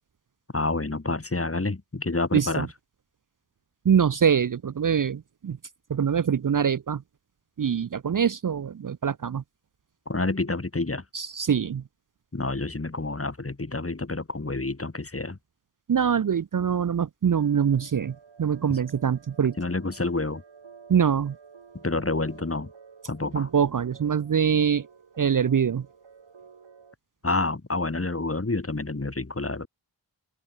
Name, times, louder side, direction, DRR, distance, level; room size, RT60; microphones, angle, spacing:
voice 1, 0.5-2.7 10.1-11.0 12.3-15.4 18.7-18.8 19.6-20.4 21.8-22.7 23.1-23.5 27.2-29.7, left 2 dB, 30° left, 3.9 m, -28 dB
voice 2, 2.3-2.7 3.8-5.6 5.9-7.0 7.6-9.4 11.1-11.8 15.9-19.6 20.9-21.3 23.3-24.9 25.2-25.9, right 7 dB, 45° right, 0.7 m, -24 dB
sound 1, 17.3-26.9, right 6 dB, 80° right, 4.5 m, -51 dB
open air
cardioid pair, 60°, 44 cm